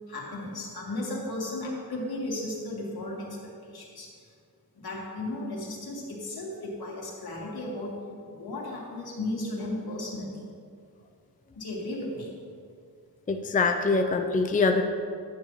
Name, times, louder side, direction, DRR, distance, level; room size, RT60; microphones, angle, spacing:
voice 1, 0.1-4.1 4.7-8.0 8.3-10.4 11.6-12.4, left 1 dB, 75° left, -3 dB, 2.0 m, -35 dB
voice 2, 13.3-14.8, left 3 dB, 20° left, 5 dB, 0.5 m, -24 dB
11.5 x 8.1 x 3.1 m, 2.2 s
wide cardioid pair, 85°, 37 cm